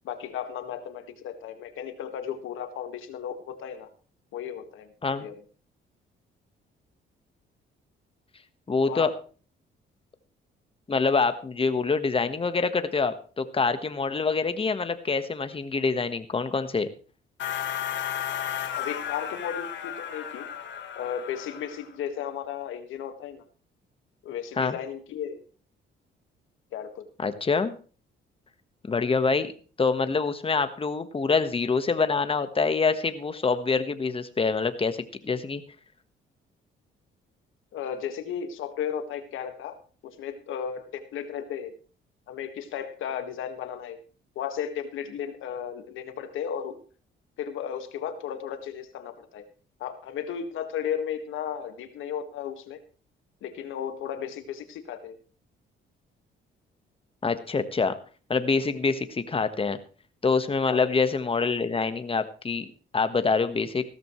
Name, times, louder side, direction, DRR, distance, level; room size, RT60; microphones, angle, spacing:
voice 1, 0.0-3.9 4.3-5.4 8.9-9.1 18.7-20.5 21.0-23.4 24.2-25.4 26.7-27.1 37.7-39.8 40.0-41.7 42.3-44.0 44.4-46.8 47.4-49.4 49.8-52.8 53.4-55.2 60.7-60.8, left 8 dB, 85° left, 8 dB, 1.8 m, -34 dB
voice 2, 8.7-9.1 10.9-16.9 24.6-24.8 27.2-27.7 28.9-29.5 29.8-35.0 35.2-35.6 57.2-57.9 58.3-59.8 60.2-62.7 62.9-63.8, left 4 dB, 30° left, 11 dB, 1.3 m, -25 dB
sound 1, 17.4-21.9, left 9 dB, 65° left, 1.8 m, -34 dB
15.5 x 13.5 x 3.2 m, 0.39 s
cardioid pair, 90°, 20 cm